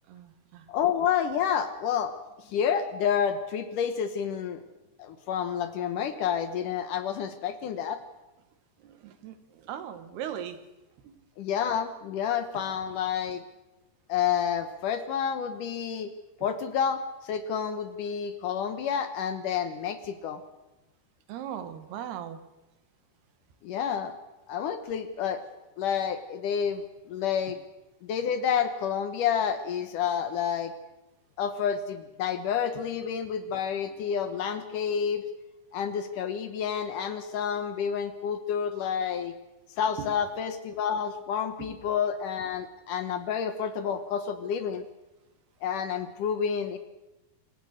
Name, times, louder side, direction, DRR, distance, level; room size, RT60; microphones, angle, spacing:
voice 1, 0.1-0.7 8.8-10.6 11.1-11.2 21.3-22.4 40.0-40.1 41.6-41.7, right 9 dB, 80° right, 11 dB, 3.5 m, -38 dB
voice 2, 0.7-2.2 2.5-4.6 5.0-8.0 11.4-13.4 14.1-16.1 16.4-20.4 23.6-24.1 24.5-25.4 25.8-27.6 28.0-30.7 31.4-35.2 35.7-39.3 39.8-44.9 45.6-46.8, left 8 dB, 65° left, 10 dB, 2.3 m, -29 dB
27.0 x 16.5 x 6.5 m, 1.0 s
omnidirectional pair, 4.5 m